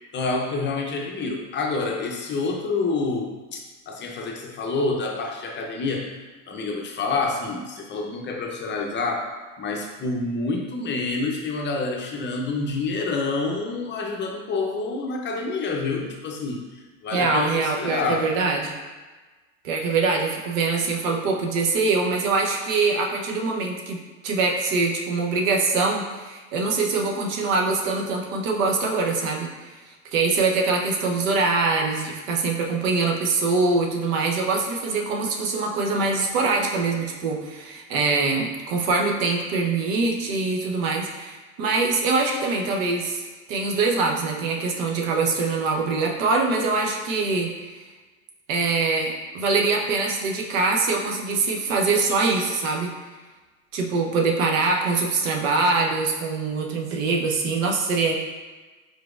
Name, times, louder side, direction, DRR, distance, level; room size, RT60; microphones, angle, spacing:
voice 1, 0.1-6.1 6.5-9.3 9.6-18.3, left 3 dB, 25° left, 1 dB, 0.6 m, -28 dB
voice 2, 17.1-18.7 19.6-24.0 24.2-29.7 30.1-43.2 43.5-47.7 48.5-52.9 53.7-58.1, right 3 dB, 70° right, 0 dB, 0.9 m, -23 dB
4.8 x 3.9 x 2.4 m, 1.3 s
hypercardioid pair, 95°, 41 cm